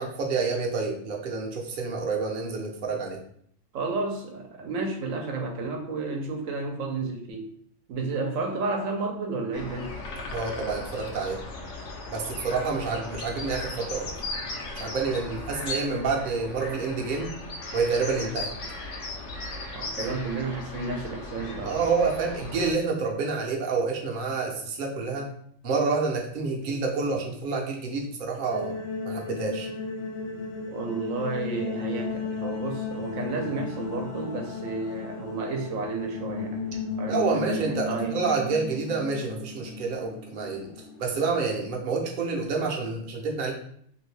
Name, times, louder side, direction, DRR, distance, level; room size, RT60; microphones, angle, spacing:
voice 1, 0.0-3.2 10.3-11.4 12.1-14.1 14.7-17.3 17.7-18.5 20.1-20.2 21.6-25.3 25.6-28.7 29.0-29.7 37.1-40.7 41.0-43.5, right 4 dB, 50° right, 0 dB, 0.7 m, -28 dB
voice 2, 3.7-7.5 7.9-10.0 19.7-21.8 30.7-38.2, right 3 dB, 80° right, 2 dB, 1.0 m, -32 dB
sound 1, 9.5-22.7, left 2 dB, 80° left, 1.0 m, -37 dB
sound 2, 28.5-42.6, left 4 dB, 50° left, 0.7 m, -35 dB
2.8 x 2.6 x 3.1 m, 0.64 s
omnidirectional pair, 1.3 m